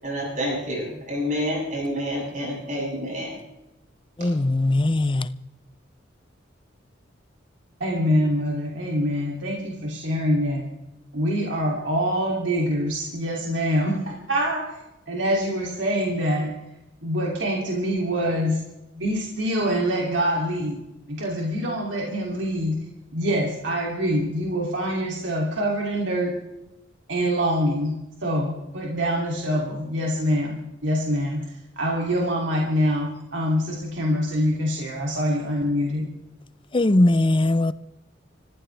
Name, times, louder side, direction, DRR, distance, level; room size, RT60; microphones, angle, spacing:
voice 1, 0.0-3.3 4.2-4.3, equal, 40° right, 8.0 m, -28 dB
voice 2, 4.2-5.3 36.7-37.7, left 2 dB, 25° left, 0.6 m, -20 dB
voice 3, 7.8-10.6 11.1-14.6 15.1-16.5 17.0-18.6 18.9-20.8 21.1-22.8 23.1-26.3 27.1-27.9 28.2-31.4 31.8-36.0, equal, 70° right, 2.9 m, -25 dB
25.0 x 15.0 x 3.4 m
head